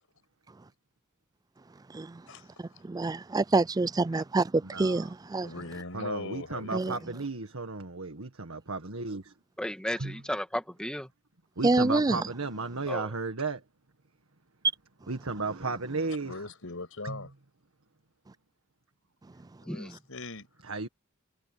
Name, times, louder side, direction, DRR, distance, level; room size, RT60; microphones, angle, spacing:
voice 1, 2.3-2.8 4.1-4.2 5.4-7.1 16.3-17.3 19.6-20.5, left 3 dB, 70° left, 6.4 m, -40 dB
voice 2, 2.9-4.5 4.8-5.5 6.7-6.9 11.6-12.2, right 3 dB, 20° right, 0.4 m, -26 dB
voice 3, 4.6-5.1 5.9-9.3 10.0-10.2 11.6-13.6 15.1-16.4 17.0-17.2 20.6-20.9, right 3 dB, 80° right, 1.7 m, -34 dB
voice 4, 9.6-11.1 12.9-13.1 19.7-19.9, equal, 5° left, 2.0 m, -34 dB
head